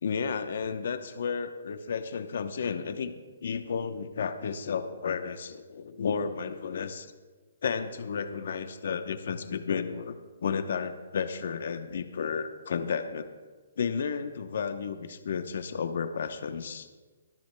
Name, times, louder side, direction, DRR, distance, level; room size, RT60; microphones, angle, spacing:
voice 1, 0.0-3.1 3.4-7.1 7.6-13.3 13.8-16.9, left 6 dB, 65° left, 9 dB, 0.8 m, -32 dB
24.0 x 10.5 x 2.2 m, 1.3 s
hypercardioid pair, 145°, 0 cm